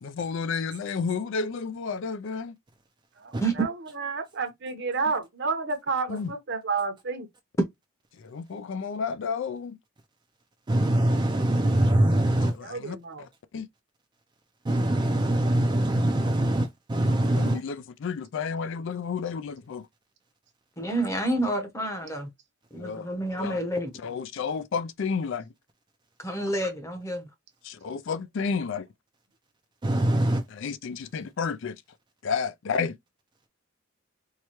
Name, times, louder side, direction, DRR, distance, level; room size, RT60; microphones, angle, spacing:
voice 1, 0.0-2.5 6.1-6.3 8.2-9.8 12.6-13.0 13.5-13.7 17.4-19.9 22.7-23.1 23.4-23.6 24.0-25.5 27.6-28.9 30.5-31.8 32.2-33.0, left 5 dB, 60° left, 0.4 m, -31 dB
voice 2, 3.2-7.3 12.6-13.3, right 4 dB, 55° right, 0.8 m, -31 dB
voice 3, 10.7-12.6 14.6-17.6 29.8-30.4, right 1 dB, 20° right, 0.4 m, -23 dB
voice 4, 20.8-22.3 22.7-23.9 26.2-27.3, right 1 dB, 15° left, 0.8 m, -29 dB
4.7 x 2.2 x 2.9 m
head